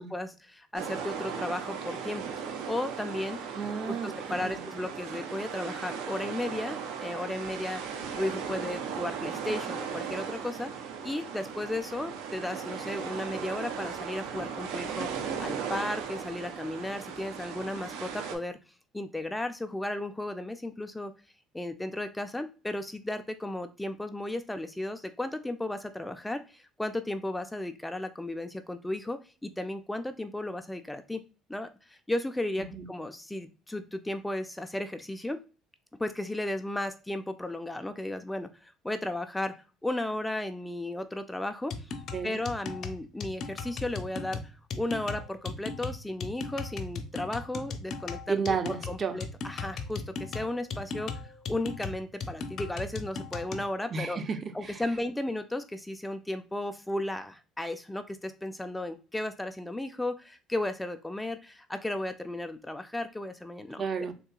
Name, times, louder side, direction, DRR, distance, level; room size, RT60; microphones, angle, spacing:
voice 1, 0.0-2.2 2.7-3.6 3.9-7.8 8.2-10.7 11.0-18.6 18.9-21.1 21.5-31.2 31.5-35.4 36.0-39.5 39.8-41.9 42.2-48.6 48.9-54.2 54.5-63.8, left 1 dB, 10° left, 0.4 m, -35 dB
sound 1, 0.7-18.4, right 6 dB, 75° right, 0.7 m, -37 dB
voice 2, 3.5-4.6 32.6-32.9 42.1-42.4 48.3-49.2 53.9-54.8 63.8-64.1, right 5 dB, 40° right, 0.7 m, -32 dB
sound 2, 41.7-53.7, left 4 dB, 55° left, 0.6 m, -37 dB
3.7 x 2.7 x 2.3 m
hypercardioid pair, 65°, 0 cm